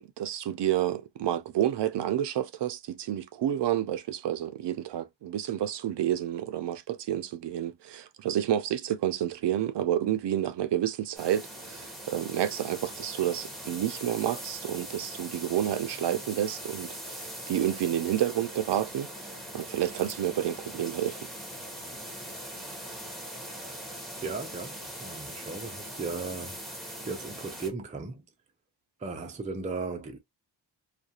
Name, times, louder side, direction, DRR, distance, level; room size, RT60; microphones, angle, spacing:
voice 1, 0.0-21.3, right 11 dB, 65° right, 0.5 m, -30 dB
sound 1, 11.2-27.7, equal, ahead, 0.8 m, -41 dB
voice 2, 24.2-26.7 27.0-28.2 29.0-30.2, right 4 dB, 15° right, 0.4 m, -36 dB
2.4 x 2.2 x 2.7 m
wide cardioid pair, 120°, 45 cm